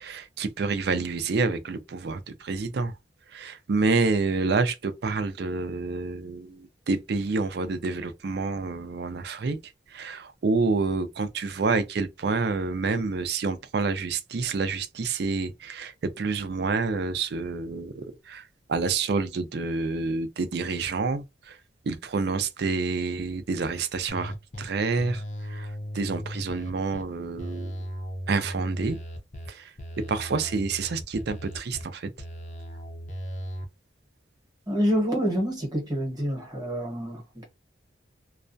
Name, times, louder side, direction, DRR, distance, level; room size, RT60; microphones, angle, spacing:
voice 1, 0.0-2.9 3.3-9.6 9.9-18.4 18.7-21.6 21.9-25.2 25.5-25.7 25.9-27.8 28.3-29.0 29.5-29.7 30.1-32.1, right 4 dB, 60° right, 0.4 m, -28 dB
sound 1, 24.1-24.6 25.0-27.0 27.4-29.5 29.8-31.8 32.2-33.7, equal, 40° left, 0.6 m, -37 dB
voice 2, 34.7-37.4, equal, 20° right, 0.9 m, -27 dB
2.3 x 2.1 x 2.5 m
head